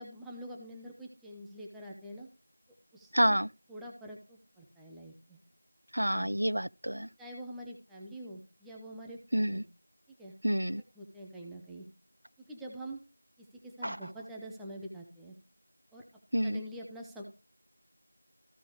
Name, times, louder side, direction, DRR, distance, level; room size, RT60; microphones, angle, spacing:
voice 1, 0.0-2.3 2.9-3.4 3.7-5.4 6.1-6.3 7.2-9.6 10.2-10.3 11.0-11.9 12.5-13.0 13.4-15.4 15.9-16.0 16.4-17.2, right 1 dB, ahead, 0.4 m, -45 dB
voice 2, 3.1-3.5 5.9-7.1 9.3-9.6 10.4-10.8 13.8-14.0 16.3-16.6, equal, 70° right, 0.5 m, -28 dB
15.0 x 5.1 x 3.1 m
figure-of-eight pair, 180°, 0 cm